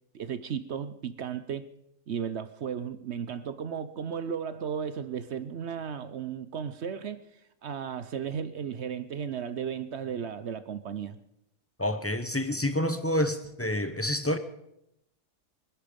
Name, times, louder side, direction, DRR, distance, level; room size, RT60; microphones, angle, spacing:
voice 1, 0.1-1.7 2.1-7.2 7.6-11.2, right 7 dB, 55° right, 0.8 m, -35 dB
voice 2, 11.8-14.4, left 1 dB, 20° left, 0.4 m, -28 dB
23.5 x 10.5 x 5.2 m
omnidirectional pair, 1.8 m